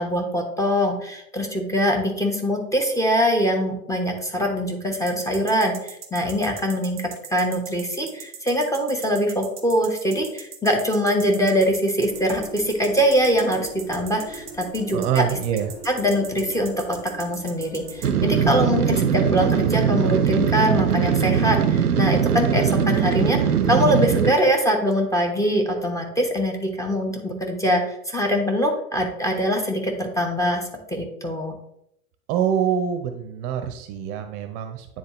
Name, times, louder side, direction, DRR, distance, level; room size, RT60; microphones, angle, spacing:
voice 1, 0.0-15.2 15.8-31.6, equal, 5° left, 2 dB, 1.1 m, -23 dB
sound 1, 4.9-18.1, right 9 dB, 30° right, 1.1 m, -39 dB
sound 2, 12.0-22.3, equal, 35° left, 2.0 m, -42 dB
voice 2, 14.9-15.7 32.3-34.9, right 8 dB, 45° right, 7 dB, 0.7 m, -25 dB
sound 3, 18.0-24.3, right 7 dB, 90° right, 0.6 m, -20 dB
9.4 x 3.7 x 3.0 m, 0.77 s
figure-of-eight pair, 80°, 44 cm